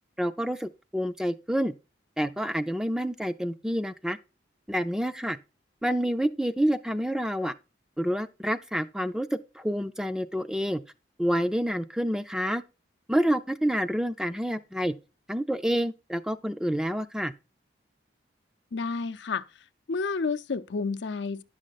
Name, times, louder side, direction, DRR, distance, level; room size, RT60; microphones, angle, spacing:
voice 1, 0.2-1.7 2.2-4.2 4.7-5.4 5.8-7.5 8.0-10.8 11.2-12.6 13.1-14.9 15.3-17.3, equal, 5° right, 0.4 m, -28 dB
voice 2, 18.7-19.4 19.9-21.4, left 4 dB, 80° left, 0.6 m, -30 dB
10.5 x 6.3 x 4.0 m
head